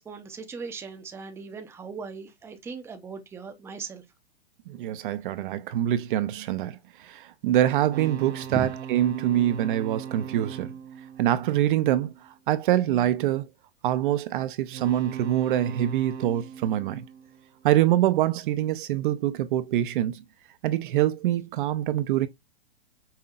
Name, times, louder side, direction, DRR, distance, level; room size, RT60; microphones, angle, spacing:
voice 1, 0.0-4.0 8.5-8.7, right 4 dB, 10° right, 0.6 m, -38 dB
voice 2, 4.7-10.7 11.2-13.5 13.8-17.0 17.6-20.2 20.6-22.3, right 12 dB, 50° right, 0.6 m, -25 dB
sound 1, 7.9-12.3 14.6-17.9, right 8 dB, 85° right, 1.0 m, -40 dB
5.6 x 2.7 x 2.3 m
hypercardioid pair, 130°, 32 cm